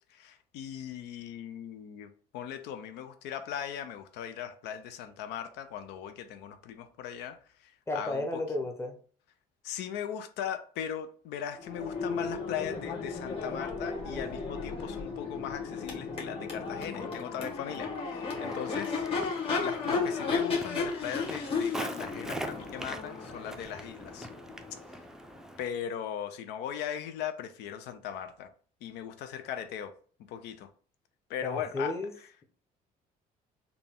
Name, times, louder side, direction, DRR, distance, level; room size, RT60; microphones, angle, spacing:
voice 1, 0.1-8.4 9.6-24.3 25.6-28.5 28.8-29.9 30.3-30.7 31.3-32.0, left 9 dB, 85° left, 0.5 m, -39 dB
voice 2, 7.9-9.0 18.3-18.6 31.4-32.1, left 2 dB, 15° left, 0.8 m, -33 dB
Crowd / Race car auto racing / Accelerating revving vroom, 11.6-25.4, left 4 dB, 35° left, 1.4 m, -34 dB
Walk footsteps, 18.3-25.7, right 1 dB, 5° right, 0.4 m, -43 dB
3.9 x 2.3 x 3.5 m
cardioid pair, 110°, 17 cm